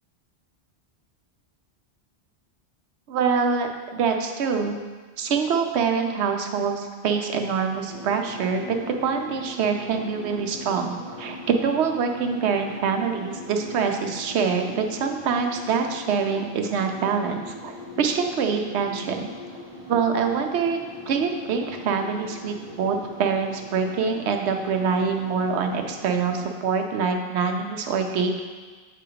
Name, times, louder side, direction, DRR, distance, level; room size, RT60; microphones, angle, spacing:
voice 1, 3.1-4.8 5.2-19.3 19.9-20.8 21.1-28.4, right 5 dB, 85° right, 4 dB, 0.9 m, -25 dB
sound 1, 7.9-26.5, left 1 dB, 25° right, 0.7 m, -41 dB
7.7 x 2.9 x 4.9 m, 1.5 s
omnidirectional pair, 1.1 m